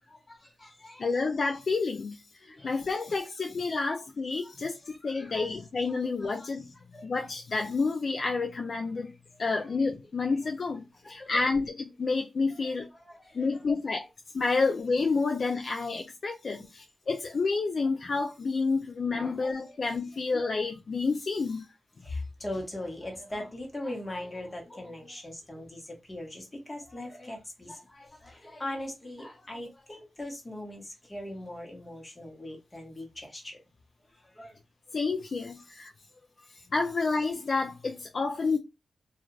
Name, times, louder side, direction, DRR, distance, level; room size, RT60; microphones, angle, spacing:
voice 1, 0.1-1.1 2.6-2.7 4.4-4.5 4.8-5.5 6.2-7.1 9.0-9.1 9.7-9.8 11.0-11.4 12.9-13.5 16.5-16.7 19.1-19.3 19.7-19.8 22.0-33.6 34.3-34.5, left 1 dB, 20° left, 1.1 m, -40 dB
voice 2, 1.0-6.7 7.0-9.1 9.4-12.9 13.3-14.1 14.3-21.7 34.9-35.9 36.7-38.6, left 4 dB, 55° left, 0.4 m, -29 dB
2.4 x 2.4 x 3.1 m
wide cardioid pair, 100°, 0 cm